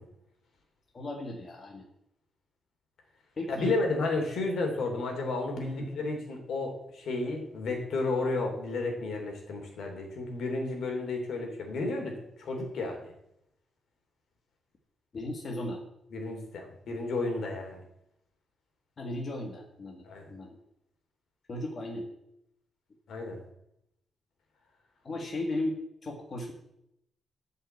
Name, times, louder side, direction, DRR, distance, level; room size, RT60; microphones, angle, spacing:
voice 1, 0.9-1.9 3.4-3.8 5.8-5.9 15.1-15.8 19.0-20.0 20.3-20.6 21.5-22.1 25.0-26.5, left 1 dB, 40° left, 1 dB, 1.9 m, -36 dB
voice 2, 3.5-13.1 16.1-17.8 20.0-20.3 23.1-23.4, left 3 dB, 75° left, 3 dB, 3.2 m, -32 dB
13.0 x 5.7 x 8.0 m, 0.82 s
cardioid pair, 125°, 0 cm